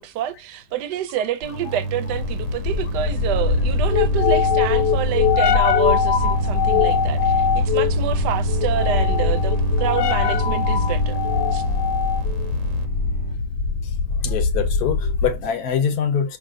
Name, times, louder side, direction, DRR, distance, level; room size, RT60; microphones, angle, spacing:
voice 1, 0.0-11.2 11.5-11.6, right 10 dB, 75° right, 1.2 m, -28 dB
sound 1, 1.4-12.9, equal, 60° right, 1.0 m, -38 dB
sound 2, 1.5-13.4, right 3 dB, 30° right, 0.6 m, -28 dB
sound 3, 2.1-15.5, left 6 dB, 85° left, 1.2 m, -21 dB
voice 2, 13.8-16.4, left 7 dB, 70° left, 1.1 m, -24 dB
5.5 x 2.6 x 2.6 m
omnidirectional pair, 1.8 m